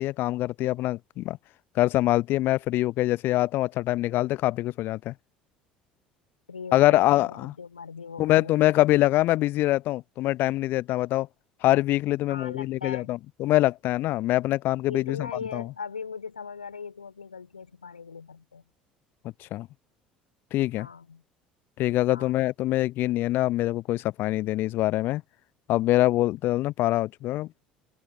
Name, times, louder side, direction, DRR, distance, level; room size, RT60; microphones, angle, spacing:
voice 1, 0.0-1.4 1.8-5.1 6.7-7.5 8.2-11.3 11.6-15.3 15.5-15.6 19.5-19.7 20.5-20.9 21.8-25.2 25.7-27.5, left 16 dB, 50° left, 0.8 m, -24 dB
voice 2, 6.5-8.7 12.3-13.1 14.9-18.6 20.8-21.2 22.1-22.5, left 5 dB, 80° left, 4.3 m, -40 dB
figure-of-eight pair, 65°, 4 cm